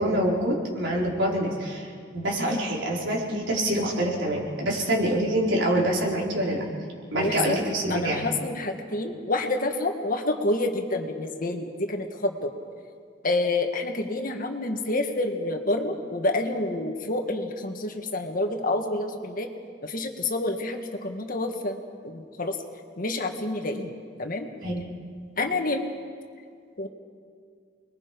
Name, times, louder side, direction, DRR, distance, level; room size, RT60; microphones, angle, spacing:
voice 1, 0.0-6.6 7.1-8.3 24.6-24.8, right 1 dB, 75° right, -4 dB, 4.9 m, -26 dB
voice 2, 7.2-7.6 7.9-12.5 13.2-19.5 19.8-22.6 23.0-23.9 24.2-24.5 25.4-25.9 26.8-26.9, left 2 dB, 50° left, 4 dB, 1.9 m, -28 dB
29.5 x 21.5 x 5.4 m, 2.1 s
head